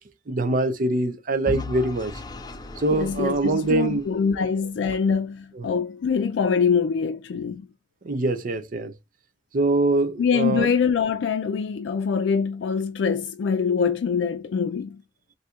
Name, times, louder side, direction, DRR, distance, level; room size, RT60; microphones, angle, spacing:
voice 1, 0.3-2.1 2.8-4.0 5.6-5.7 8.0-8.9 9.5-10.7, right 2 dB, 50° right, 0.5 m, -23 dB
Vehicle / Engine, 1.5-4.5, left 2 dB, 25° left, 0.5 m, -36 dB
voice 2, 2.9-7.7 10.2-15.0, left 6 dB, 90° left, 0.4 m, -24 dB
4.2 x 2.6 x 2.4 m
head